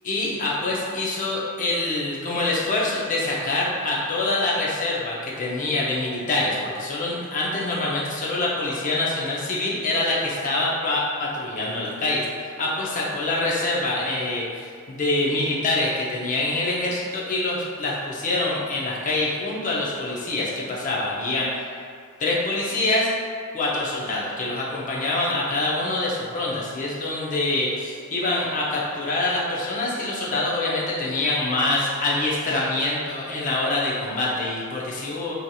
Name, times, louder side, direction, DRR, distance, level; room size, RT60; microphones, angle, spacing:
voice 1, 0.0-21.8 22.2-23.1 23.5-35.3, left 2 dB, 35° left, -5 dB, 0.5 m, -25 dB
2.8 x 2.8 x 2.3 m, 2.1 s
head